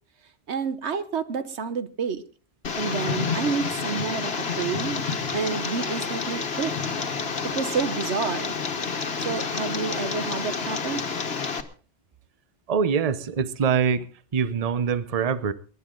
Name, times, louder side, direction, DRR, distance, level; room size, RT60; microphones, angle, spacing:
voice 1, 0.5-2.2 2.8-4.3 4.6-5.0 5.3-6.7 7.5-8.6 9.2-11.0, right 5 dB, 80° right, 1.3 m, -29 dB
Tick, 2.6-11.6, left 5 dB, 65° left, 1.6 m, -29 dB
voice 2, 12.7-14.1 14.3-15.5, right 6 dB, 40° right, 0.8 m, -24 dB
22.5 x 11.0 x 3.8 m
omnidirectional pair, 1.1 m